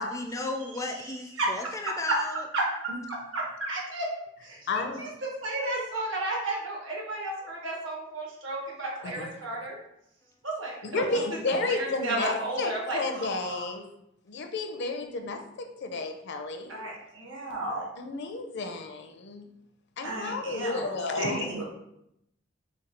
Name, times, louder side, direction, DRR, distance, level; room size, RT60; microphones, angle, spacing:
voice 1, 0.0-2.4, left 2 dB, 15° left, 3 dB, 0.4 m, -35 dB
voice 2, 0.9-1.5 2.1-2.2 2.5-2.6 3.3-4.1 4.4-9.8 10.4-10.7 11.1-11.2 11.5-13.7 16.7-17.9 20.0-20.9 21.2-21.6, right 2 dB, 70° right, -2 dB, 1.5 m, -33 dB
voice 3, 4.7-5.0 9.0-9.3 10.8-13.8 14.3-16.8 18.0-19.4 20.0-21.5, left 3 dB, 60° left, 5 dB, 0.6 m, -32 dB
5.1 x 2.3 x 4.3 m, 0.79 s
head